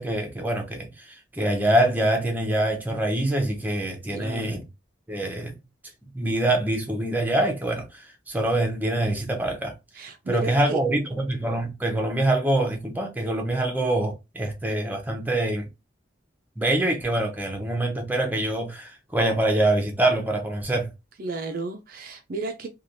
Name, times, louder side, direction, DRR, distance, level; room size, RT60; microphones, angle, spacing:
voice 1, 0.0-4.6 5.1-5.5 6.1-9.7 10.3-15.7 16.6-20.9, right 1 dB, 10° right, 0.7 m, -25 dB
voice 2, 4.1-4.5 9.9-10.8 21.2-22.7, right 2 dB, 50° right, 0.4 m, -33 dB
3.2 x 2.3 x 2.6 m
head